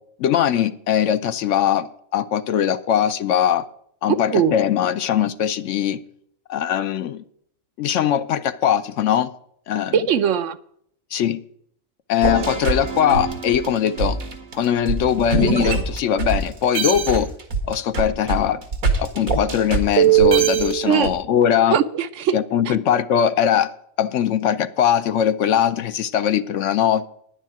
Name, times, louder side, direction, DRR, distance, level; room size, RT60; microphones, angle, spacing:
voice 1, 0.2-3.6 4.0-6.0 6.5-7.2 7.8-9.3 9.7-9.9 11.1-11.4 12.1-14.2 14.5-17.3 17.7-18.6 19.0-21.8 22.3-27.1, left 9 dB, 65° left, 0.9 m, -21 dB
voice 2, 4.1-4.5 9.9-10.6 20.8-21.1 21.7-22.3 22.7-22.8, right 8 dB, 70° right, 0.9 m, -20 dB
sound 1, 12.2-16.4 16.7-21.1, right 7 dB, 85° right, 2.1 m, -22 dB
10.5 x 6.5 x 8.9 m
omnidirectional pair, 1.4 m